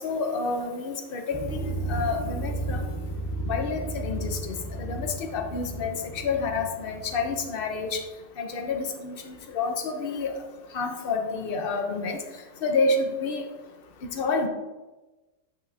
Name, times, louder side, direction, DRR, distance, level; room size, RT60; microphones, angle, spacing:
voice 1, 0.0-2.8 3.5-6.0 6.2-8.0 8.4-10.3 10.7-12.2 12.6-13.4 14.0-14.5, left 4 dB, 45° left, 4 dB, 0.8 m, -29 dB
sound 1, 1.3-8.0, right 1 dB, 15° right, 1.0 m, -33 dB
8.0 x 6.0 x 2.8 m, 1.2 s
omnidirectional pair, 1.7 m